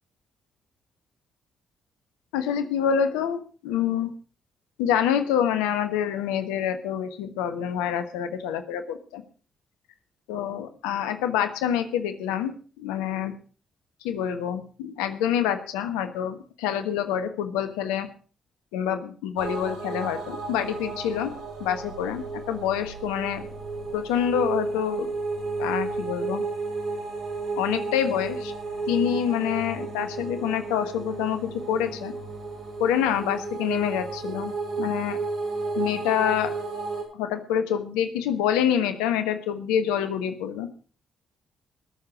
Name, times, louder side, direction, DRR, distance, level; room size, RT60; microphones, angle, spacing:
voice 1, 2.3-4.1 4.8-9.2 10.3-13.3 14.0-18.1 18.7-21.3 21.6-23.4 23.9-25.1 25.6-26.4 27.6-28.5 28.9-32.1 32.8-34.5 34.8-35.2 35.8-36.5 37.1-40.7, left 9 dB, 75° left, 10 dB, 1.3 m, -26 dB
sound 1, 19.4-37.0, right 3 dB, 70° right, 7.5 m, -32 dB
20.5 x 6.9 x 6.2 m, 0.40 s
hypercardioid pair, 40°, 0 cm